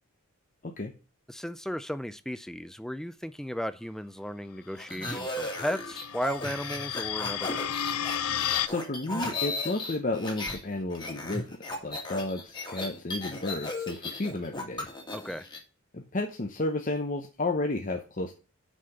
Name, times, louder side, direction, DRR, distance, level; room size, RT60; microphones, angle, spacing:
voice 1, 1.3-7.7 15.1-15.5, equal, ahead, 0.3 m, -35 dB
sound 1, 4.8-10.6 10.9-15.6, left 2 dB, 20° left, 1.9 m, -36 dB
sound 2, 5.1-8.7, left 9 dB, 85° left, 0.6 m, -33 dB
voice 2, 8.6-14.9 15.9-18.3, left 2 dB, 35° left, 0.8 m, -32 dB
6.3 x 5.8 x 6.9 m
head